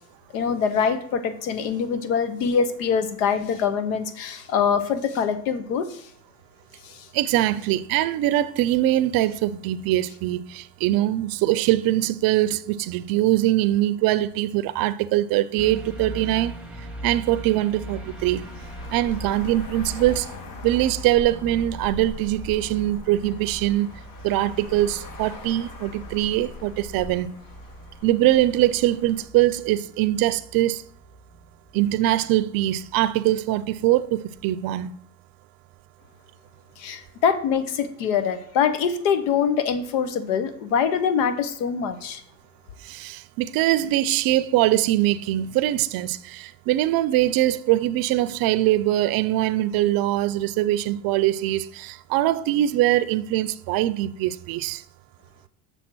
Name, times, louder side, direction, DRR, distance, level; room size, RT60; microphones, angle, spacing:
voice 1, 0.3-6.1 6.8-7.1 36.8-42.2, left 7 dB, 85° left, 0.9 m, -24 dB
voice 2, 7.1-16.5 17.0-18.4 18.9-20.3 20.6-23.9 24.2-27.3 28.0-30.8 31.7-34.9 42.9-54.8, right 14 dB, 60° right, 0.5 m, -22 dB
sound 1, 15.6-33.3 33.7-33.9, right 1 dB, ahead, 1.1 m, -41 dB
Traffic noise roadway noise, 17.9-29.3, left 3 dB, 55° left, 1.2 m, -42 dB
7.2 x 3.5 x 6.0 m
supercardioid pair, 85°, 40 cm